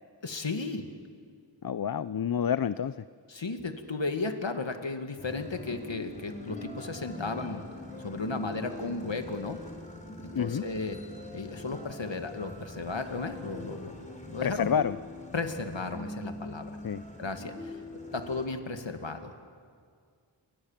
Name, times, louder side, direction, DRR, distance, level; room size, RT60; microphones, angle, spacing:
voice 1, 0.2-0.9 3.3-7.6 8.0-9.6 10.2-11.0 11.3-14.7 15.3-16.8 17.2-17.8 18.1-19.3, left 3 dB, 75° left, 7 dB, 2.1 m, -35 dB
voice 2, 1.6-3.0 10.3-10.6 14.4-15.0 16.8-17.0, left 8 dB, 50° left, 15 dB, 0.6 m, -28 dB
sound 1, 5.2-18.5, left 1 dB, 15° left, 4.4 m, -43 dB
28.5 x 24.0 x 7.4 m, 2.1 s
wide cardioid pair, 40°, 45 cm